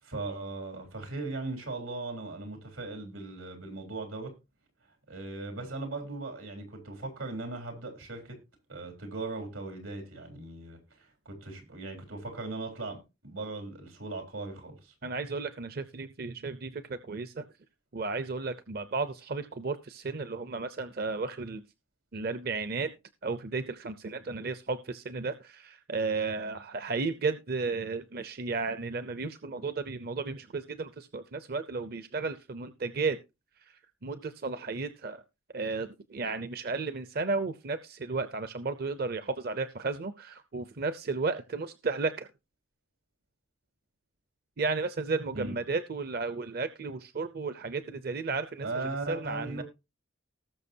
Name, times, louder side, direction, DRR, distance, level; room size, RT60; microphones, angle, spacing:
voice 1, 0.0-4.3 5.1-8.4 8.7-14.9 45.3-45.6 48.6-49.6, right 3 dB, 90° right, 3.6 m, -38 dB
voice 2, 15.0-17.5 17.9-21.6 22.1-22.9 23.2-33.2 33.7-35.2 35.5-42.3 44.6-48.7 49.1-49.6, right 4 dB, 50° right, 0.6 m, -33 dB
19.0 x 6.4 x 2.7 m
head